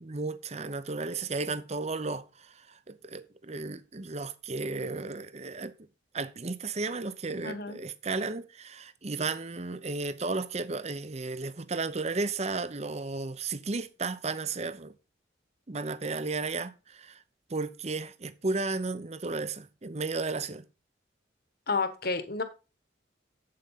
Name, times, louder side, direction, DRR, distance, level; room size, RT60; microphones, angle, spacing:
voice 1, 0.0-5.7 6.1-14.9 15.7-17.2 17.5-20.6, right 3 dB, 35° right, 0.7 m, -34 dB
voice 2, 7.4-7.8 21.7-22.4, left 4 dB, 55° left, 1.5 m, -30 dB
8.1 x 7.7 x 5.6 m
head